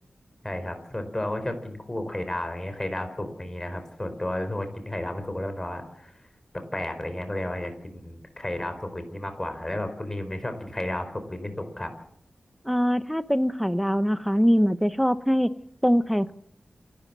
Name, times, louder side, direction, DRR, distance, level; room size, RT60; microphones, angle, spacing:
voice 1, 0.4-6.1 6.7-11.9, left 1 dB, 20° left, 8 dB, 4.4 m, -32 dB
voice 2, 12.7-15.5 15.8-16.3, equal, ahead, 13 dB, 0.9 m, -22 dB
28.0 x 12.5 x 7.5 m, 0.68 s
wide cardioid pair, 95°, 3 cm